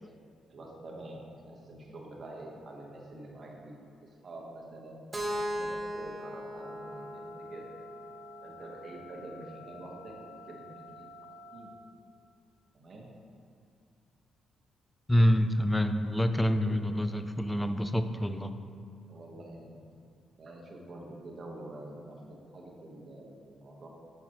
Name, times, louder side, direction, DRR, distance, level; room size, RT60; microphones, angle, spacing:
voice 1, 0.5-1.2 1.4-3.7 4.0-5.0 5.5-7.2 7.5-7.6 8.4-11.1 11.5-11.7 12.7-13.1 16.6-16.8 19.0-19.8 20.4-22.2 22.5-23.9, right 2 dB, 45° right, -2 dB, 1.1 m, -46 dB
Keyboard (musical), 5.1-9.0, equal, 15° right, 0.8 m, -38 dB
sound 1, 6.6-11.6, left 1 dB, 85° left, 1.1 m, -50 dB
voice 2, 15.1-18.5, equal, 10° left, 9 dB, 0.3 m, -26 dB
6.0 x 5.6 x 2.9 m, 2.3 s
cardioid pair, 90°, 0 cm